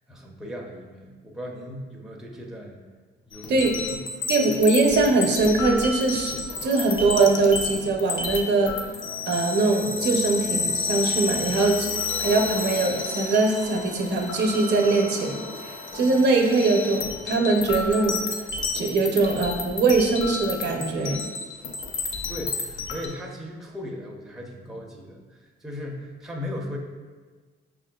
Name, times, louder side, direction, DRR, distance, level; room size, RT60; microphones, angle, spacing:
voice 1, 0.1-2.8 3.3-4.3 22.3-26.8, left 1 dB, ahead, -1 dB, 0.5 m, -37 dB
sound 1, 3.3-23.1, left 4 dB, 80° left, 0.5 m, -31 dB
voice 2, 4.3-6.4 6.6-8.7 9.3-11.9 12.2-18.2 18.7-21.2, right 3 dB, 60° right, 2 dB, 0.5 m, -22 dB
sound 2, 6.5-17.3, left 1 dB, 50° left, 0.9 m, -43 dB
5.1 x 2.4 x 2.2 m, 1.4 s
cardioid pair, 90°, 20 cm